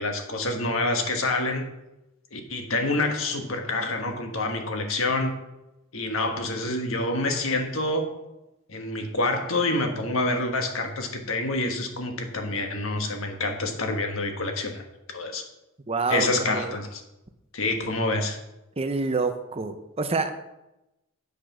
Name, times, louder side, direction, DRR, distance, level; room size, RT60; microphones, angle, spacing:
voice 1, 0.0-1.7 2.3-5.4 5.9-8.1 8.7-14.8 15.1-15.4 16.1-17.0 17.5-18.4, left 2 dB, 70° left, 4 dB, 1.5 m, -27 dB
voice 2, 15.9-16.7 18.8-20.3, right 4 dB, 30° right, 8 dB, 0.7 m, -27 dB
8.5 x 6.7 x 6.1 m, 0.94 s
head